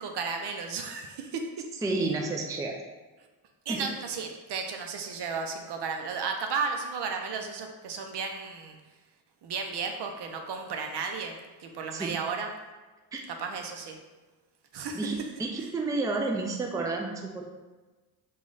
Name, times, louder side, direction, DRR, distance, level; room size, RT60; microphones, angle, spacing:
voice 1, 0.0-1.7 3.7-8.8 9.4-12.5 13.3-14.0 14.7-15.0, right 5 dB, 60° right, 4 dB, 0.6 m, -34 dB
voice 2, 1.8-2.8 3.7-3.9 11.9-12.2 13.1-13.2 14.9-17.4, right 3 dB, 10° right, 1 dB, 0.4 m, -30 dB
3.1 x 2.4 x 3.8 m, 1.2 s
supercardioid pair, 60°, 46 cm